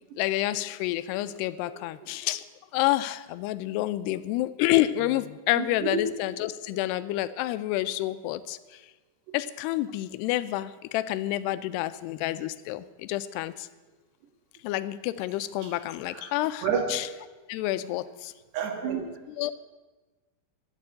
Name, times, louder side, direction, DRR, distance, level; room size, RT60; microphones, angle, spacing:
voice 1, 0.2-2.5 2.7-8.8 9.3-13.7 14.6-17.1 17.5-18.3 19.4-19.5, left 15 dB, 85° left, 15 dB, 2.6 m, -29 dB
voice 2, 5.6-6.0 16.1-16.3 16.6-16.9 18.5-19.1, right 6 dB, 80° right, 4 dB, 3.7 m, -29 dB
11.5 x 6.9 x 9.5 m, 1.2 s
omnidirectional pair, 4.8 m